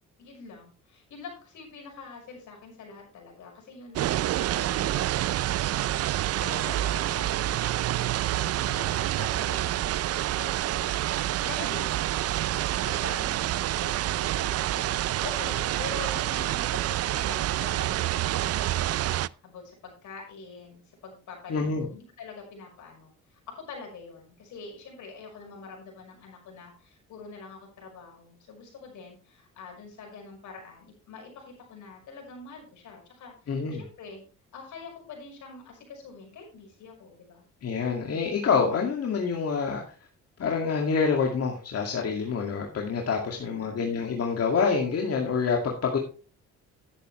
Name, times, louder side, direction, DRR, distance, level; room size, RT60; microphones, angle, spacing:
voice 1, 0.2-5.6 6.1-9.8 10.1-34.2 34.5-37.4 43.4-43.8, left 4 dB, 75° left, 1 dB, 5.9 m, -45 dB
sound 1, 4.0-19.3, right 14 dB, 55° right, 0.4 m, -27 dB
voice 2, 21.5-21.9 33.5-33.8 37.6-39.8 40.4-46.0, left 5 dB, 55° left, 0 dB, 2.3 m, -27 dB
11.5 x 9.9 x 3.2 m, 0.36 s
cardioid pair, 90°, 30 cm